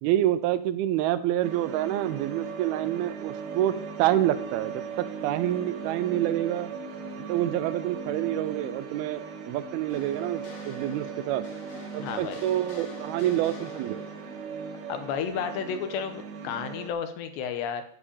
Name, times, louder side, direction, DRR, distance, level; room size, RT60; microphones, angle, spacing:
voice 1, 0.0-3.7 4.0-6.7 7.3-11.5 11.9-14.0, right 13 dB, 90° right, 12 dB, 2.2 m, -27 dB
sound 1, 1.4-16.9, right 5 dB, 65° right, 3.2 m, -38 dB
sound 2, 9.9-15.6, left 3 dB, 55° left, 2.2 m, -47 dB
voice 2, 12.0-12.4 14.9-17.8, left 7 dB, 75° left, 9 dB, 3.1 m, -32 dB
13.0 x 5.1 x 8.4 m, 0.66 s
omnidirectional pair, 5.2 m